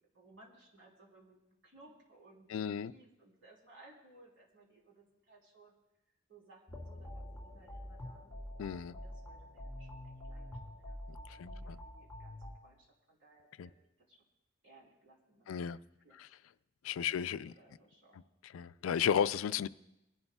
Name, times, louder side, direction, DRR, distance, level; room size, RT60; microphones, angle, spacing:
voice 1, 0.1-5.8 6.3-8.3 9.0-14.3 14.6-16.4 17.0-18.2, right 2 dB, 70° right, -2 dB, 3.3 m, -62 dB
voice 2, 2.5-2.9 8.6-8.9 11.3-11.8 13.6-13.7 15.5-15.8 16.2-16.3 16.8-17.5 18.5-19.7, left 8 dB, 90° left, 15 dB, 0.3 m, -34 dB
sound 1, 6.7-12.5, left 1 dB, 5° left, 3.1 m, -46 dB
27.5 x 11.5 x 2.3 m, 0.92 s
head